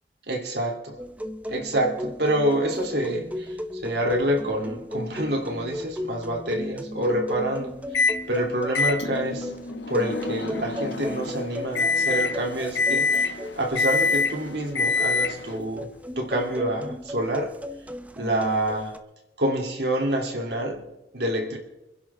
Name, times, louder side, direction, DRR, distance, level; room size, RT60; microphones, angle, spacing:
voice 1, 0.3-0.8 1.5-9.5 9.9-17.5 18.1-18.9 19.4-21.6, right 1 dB, 65° right, 1 dB, 3.2 m, -27 dB
sound 1, 1.0-19.0, left 1 dB, 10° right, 0.7 m, -36 dB
Microwave oven, 7.9-8.2 8.7-15.6, left 4 dB, 80° left, 1.0 m, -26 dB
26.5 x 11.0 x 3.7 m, 0.98 s
head